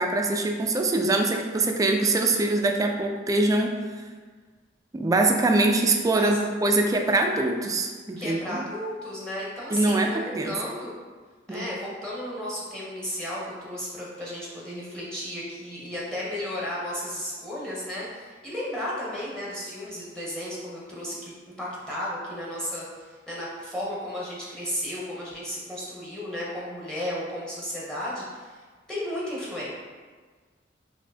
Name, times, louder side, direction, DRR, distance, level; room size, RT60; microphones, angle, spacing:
voice 1, 0.0-3.7 4.9-8.6 9.7-10.5 11.5-11.6, right 2 dB, 20° right, 3 dB, 0.3 m, -23 dB
voice 2, 8.2-10.9 11.5-28.6 28.9-29.7, equal, 5° left, -6 dB, 0.7 m, -34 dB
5.3 x 2.6 x 2.7 m, 1.4 s
head